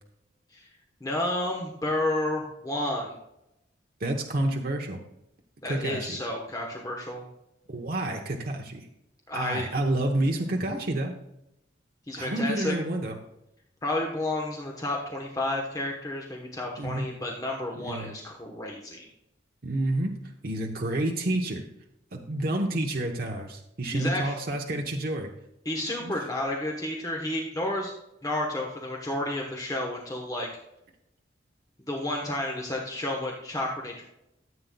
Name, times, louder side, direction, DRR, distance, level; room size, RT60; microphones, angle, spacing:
voice 1, 1.0-3.2 5.6-7.2 9.3-9.7 12.1-12.8 13.8-19.1 23.9-24.3 25.6-27.9 28.2-30.5 31.9-34.0, left 1 dB, 20° left, 0 dB, 1.0 m, -31 dB
voice 2, 4.0-5.0 5.6-6.2 7.7-8.9 9.3-11.1 12.1-13.2 16.8-17.1 17.8-18.1 19.6-20.1 20.4-21.6 22.1-25.3 26.0-26.2, right 1 dB, 50° right, 2 dB, 0.9 m, -29 dB
14.0 x 7.9 x 2.3 m, 0.85 s
head